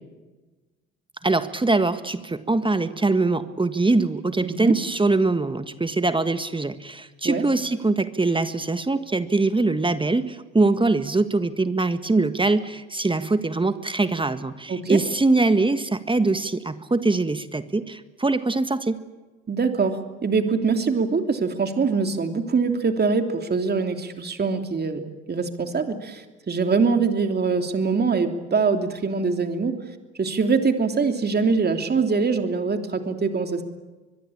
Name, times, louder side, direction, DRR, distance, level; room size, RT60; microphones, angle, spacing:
voice 1, 1.2-19.0, right 3 dB, 15° right, 11 dB, 1.7 m, -23 dB
voice 2, 4.4-4.7 7.2-7.4 14.7-15.0 19.5-25.0 25.3-29.8 30.2-33.6, right 4 dB, 35° right, 6 dB, 3.1 m, -23 dB
24.0 x 22.0 x 8.8 m, 1.2 s
hypercardioid pair, 60°, 29 cm